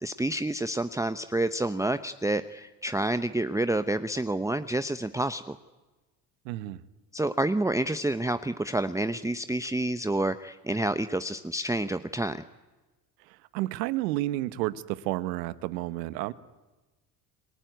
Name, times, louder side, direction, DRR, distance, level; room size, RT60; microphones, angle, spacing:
voice 1, 0.0-5.5 7.1-12.4, right 1 dB, 5° right, 11 dB, 0.8 m, -28 dB
voice 2, 6.4-6.8 13.5-16.3, right 16 dB, 85° right, 16 dB, 1.2 m, -31 dB
29.0 x 19.5 x 9.3 m, 1.2 s
supercardioid pair, 80°, 49 cm